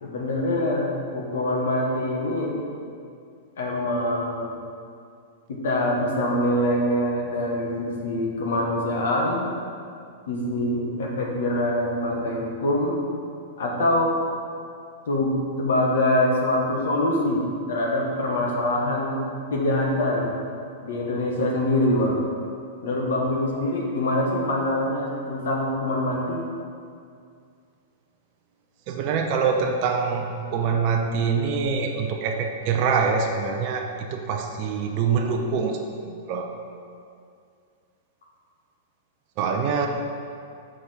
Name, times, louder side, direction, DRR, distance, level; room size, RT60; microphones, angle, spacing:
voice 1, 0.0-2.6 3.6-4.6 5.5-9.5 10.3-12.9 13.6-14.1 15.1-19.2 19.5-20.3 20.8-22.2 22.8-26.4, left 1 dB, 75° left, -1 dB, 1.3 m, -24 dB
voice 2, 28.9-36.5 39.4-39.9, right 5 dB, 50° right, 3 dB, 0.6 m, -25 dB
6.7 x 4.9 x 4.5 m, 2.3 s
hypercardioid pair, 110°, 0 cm